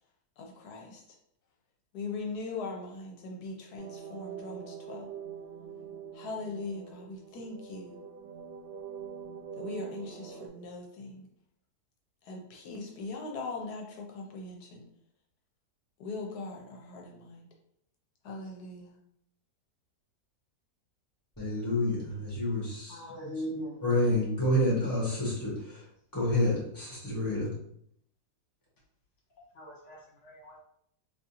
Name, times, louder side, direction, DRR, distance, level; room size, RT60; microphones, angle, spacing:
voice 1, 0.4-1.0 1.9-5.1 6.1-8.0 9.5-11.3 12.2-14.8 16.0-17.5 18.2-19.0, left 3 dB, 75° left, 1 dB, 1.2 m, -40 dB
sound 1, 3.8-10.5, right 7 dB, 70° right, 1.1 m, -44 dB
voice 2, 21.4-23.0 23.8-25.8 26.1-27.5, left 1 dB, 15° left, -5 dB, 1.3 m, -28 dB
voice 3, 22.9-23.8 29.5-30.6, equal, 50° left, -4 dB, 1.4 m, -40 dB
3.5 x 2.8 x 2.8 m, 0.70 s
omnidirectional pair, 1.7 m